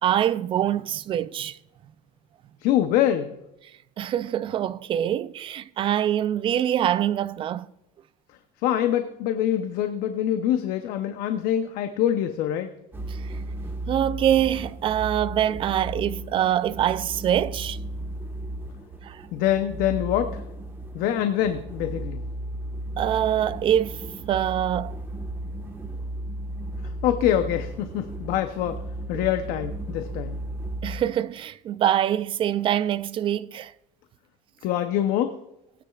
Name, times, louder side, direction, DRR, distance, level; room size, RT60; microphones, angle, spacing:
voice 1, 0.0-1.6 4.0-7.7 13.1-13.3 13.9-17.8 19.0-19.2 23.0-24.9 29.1-29.2 30.8-33.7, right 11 dB, 35° right, 0.4 m, -24 dB
voice 2, 2.6-3.3 8.6-12.7 19.3-20.4 20.9-22.2 26.8-28.8 29.1-30.5 34.6-35.4, left 11 dB, 65° left, 0.7 m, -25 dB
Original Ambience Sound Unaltered, 12.9-31.0, right 1 dB, 15° right, 1.3 m, -35 dB
19.0 x 9.6 x 2.4 m
cardioid pair, 135°, 16 cm